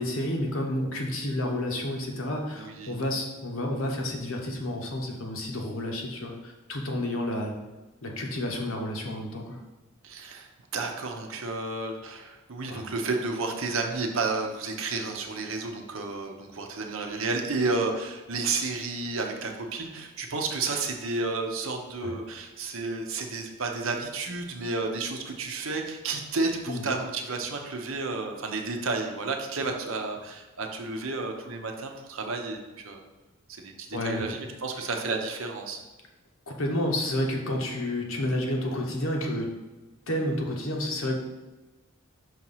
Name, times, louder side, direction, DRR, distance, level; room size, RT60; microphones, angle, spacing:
voice 1, 0.0-7.5 8.0-9.6 12.7-12.9 22.0-22.1 26.7-26.8 33.9-34.2 36.5-39.5 40.1-41.2, left 1 dB, 65° left, 1 dB, 1.0 m, -30 dB
voice 2, 2.5-3.0 10.0-32.6 32.8-33.0 33.5-35.8, right 3 dB, 65° right, 3 dB, 0.8 m, -31 dB
5.6 x 3.0 x 5.6 m, 1.2 s
head